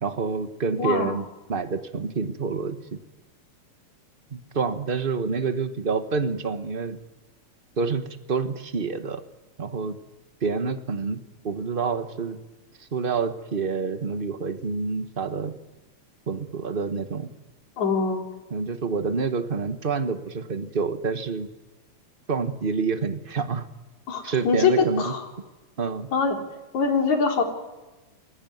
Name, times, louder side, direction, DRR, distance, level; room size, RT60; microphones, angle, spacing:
voice 1, 0.0-3.0 4.3-7.0 7.8-8.0 8.3-9.2 9.6-10.0 10.4-11.2 11.4-12.4 12.8-15.5 16.3-17.3 18.5-21.5 22.3-23.7 24.2-25.1 25.8-26.1, right 5 dB, 50° right, 9 dB, 0.6 m, -27 dB
voice 2, 0.8-1.1 17.8-18.2 24.1-25.2 26.1-26.4 26.7-27.4, left 5 dB, 75° left, 3 dB, 4.7 m, -23 dB
28.5 x 20.5 x 9.4 m, 1.1 s
omnidirectional pair, 3.3 m